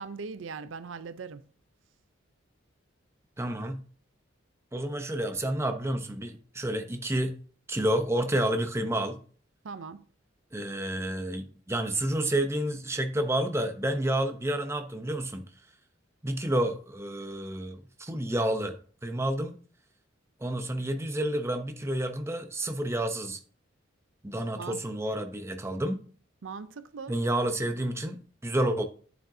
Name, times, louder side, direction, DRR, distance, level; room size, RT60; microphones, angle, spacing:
voice 1, 0.0-1.4 9.6-10.0 24.6-24.8 26.4-27.2, right 5 dB, 80° right, 0.5 m, -40 dB
voice 2, 3.4-3.8 4.7-7.4 7.7-9.2 10.5-15.5 16.2-18.8 19.0-19.6 20.4-23.4 24.2-26.0 27.1-28.9, right 1 dB, 15° right, 0.7 m, -30 dB
9.2 x 7.6 x 2.7 m
head